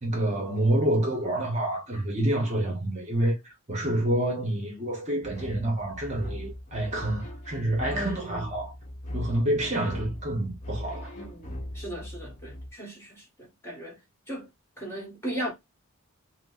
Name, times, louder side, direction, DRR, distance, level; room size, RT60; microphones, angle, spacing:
voice 1, 0.0-3.4 3.7-8.7 9.1-11.1, right 1 dB, 30° right, 1.0 m, -28 dB
sound 1, 5.2-12.7, left 1 dB, 35° left, 0.9 m, -39 dB
voice 2, 7.9-8.4 11.1-14.0 14.3-14.5 14.8-15.5, right 1 dB, 10° left, 1.4 m, -37 dB
4.3 x 2.1 x 2.4 m
head